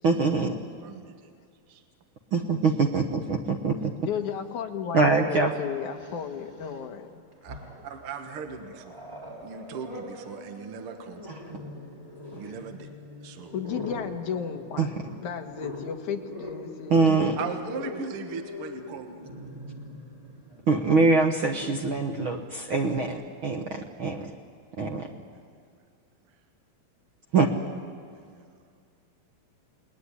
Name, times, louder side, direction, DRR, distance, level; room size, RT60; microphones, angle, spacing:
voice 1, 0.0-0.6 2.3-3.9 4.9-5.5 11.3-11.4 14.8-14.9 16.9-17.4 20.7-24.3 24.8-25.1 27.3-27.5, right 4 dB, 85° right, 3 dB, 1.1 m, -24 dB
voice 2, 0.8-1.3 1.7-1.8 7.4-7.6 7.8-9.0 9.4-11.4 12.3-12.9 13.2-13.5 17.4-19.2 28.2-28.3, right 5 dB, 60° right, 6 dB, 1.5 m, -38 dB
voice 3, 4.0-7.2 13.5-14.9 15.2-17.2, left 7 dB, 60° left, 4 dB, 2.6 m, -34 dB
Growling, 4.8-4.9 5.8-6.9 7.3-8.0 8.4-23.0, left 1 dB, 10° right, 3.0 m, -43 dB
29.0 x 20.0 x 9.8 m, 2.2 s
omnidirectional pair, 4.2 m